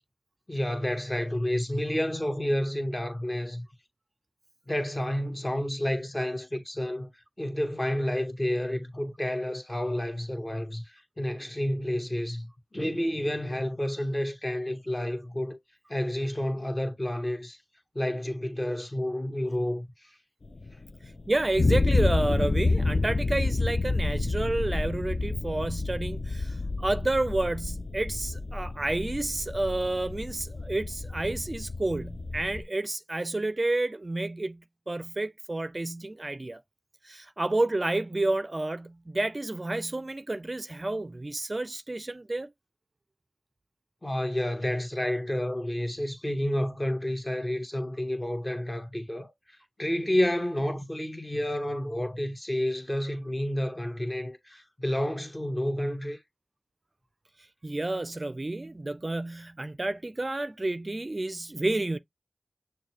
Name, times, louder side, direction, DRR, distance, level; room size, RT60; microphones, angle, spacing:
voice 1, 0.5-3.7 4.7-7.1 7.4-15.6 15.9-17.6 17.9-20.1 44.0-56.2, left 1 dB, 30° left, 1.2 m, -30 dB
sound 1, 20.5-32.6, left 3 dB, 60° left, 0.4 m, -29 dB
voice 2, 21.3-36.6 37.0-42.5 57.6-62.0, right 2 dB, 40° right, 0.4 m, -30 dB
6.5 x 2.2 x 2.8 m
cardioid pair, 45°, 0 cm